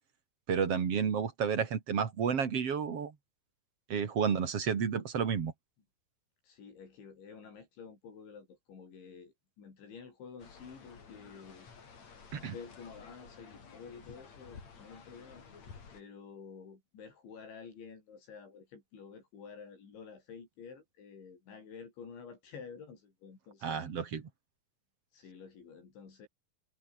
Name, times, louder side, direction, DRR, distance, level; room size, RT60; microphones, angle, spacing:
voice 1, 0.5-3.1 3.9-5.5 12.3-12.5 23.6-24.2, right 7 dB, 40° right, 2.6 m, -31 dB
voice 2, 6.4-11.7 12.1-23.8 25.1-26.3, left 6 dB, 80° left, 8.3 m, -50 dB
sound 1, 10.4-16.0, left 5 dB, 40° left, 4.6 m, -53 dB
omnidirectional pair, 5.2 m